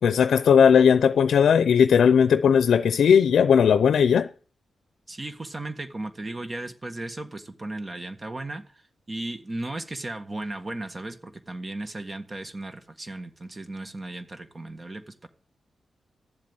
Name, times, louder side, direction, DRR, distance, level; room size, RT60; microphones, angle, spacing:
voice 1, 0.0-4.3, left 7 dB, 90° left, 0.6 m, -18 dB
voice 2, 5.1-15.3, right 2 dB, 30° right, 1.7 m, -36 dB
13.5 x 7.6 x 8.9 m
wide cardioid pair, 100°, 0 cm